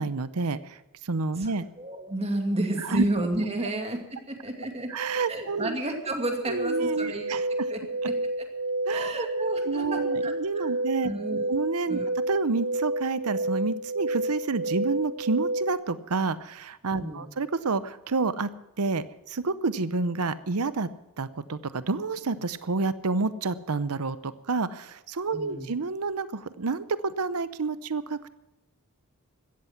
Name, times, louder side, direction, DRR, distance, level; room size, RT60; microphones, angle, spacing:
voice 1, 0.0-1.7 2.8-3.1 4.9-5.8 6.4-7.5 8.9-9.3 9.7-11.1 11.5-12.0 12.3-18.5 18.8-20.9 21.2-28.2, right 4 dB, 80° right, 14 dB, 0.8 m, -29 dB
voice 2, 1.8-4.9 5.3-7.4 7.7-7.8 8.1-8.2 8.9-10.7 11.0-11.4 11.9-12.1 17.0-17.3 25.3-25.7, right 1 dB, 30° right, 4 dB, 2.5 m, -31 dB
sound 1, 6.3-15.7, right 1 dB, 45° right, 0.5 m, -30 dB
16.0 x 13.5 x 6.0 m, 0.95 s
head